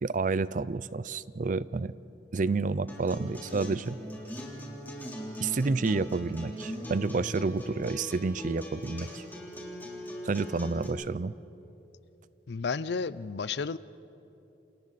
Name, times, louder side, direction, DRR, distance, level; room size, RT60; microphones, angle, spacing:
voice 1, 0.0-1.9 2.3-4.0 5.4-9.2 10.2-11.3, right 3 dB, 45° right, 17 dB, 0.5 m, -29 dB
Acoustic guitar, 2.9-10.9, equal, 10° left, 3.5 m, -40 dB
voice 2, 12.5-13.8, left 5 dB, 65° left, 17 dB, 0.5 m, -32 dB
28.5 x 28.5 x 4.1 m, 3.0 s
head